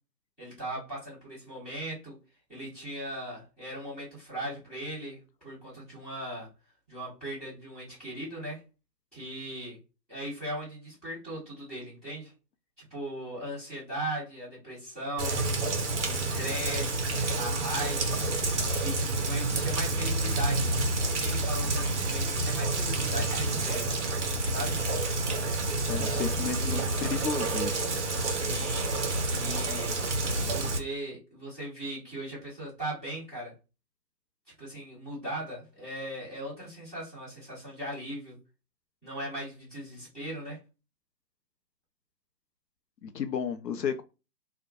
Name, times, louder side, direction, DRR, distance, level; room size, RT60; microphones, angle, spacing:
voice 1, 0.4-2.1 2.5-6.5 6.9-8.6 9.1-9.8 10.1-12.3 12.9-15.4 16.0-18.2 18.8-20.7 21.0-23.9 24.5-24.8 26.6-26.8 28.3-28.9 29.3-30.0 30.4-33.5 34.6-38.4 39.0-40.6, right 1 dB, ahead, -16 dB, 0.9 m, -38 dB
Rain, 15.2-30.8, right 2 dB, 45° right, 0.5 m, -29 dB
voice 2, 25.9-27.8 43.0-44.0, left 6 dB, 75° left, 10 dB, 0.5 m, -33 dB
2.5 x 2.1 x 2.6 m, 0.29 s
figure-of-eight pair, 150°, 50 cm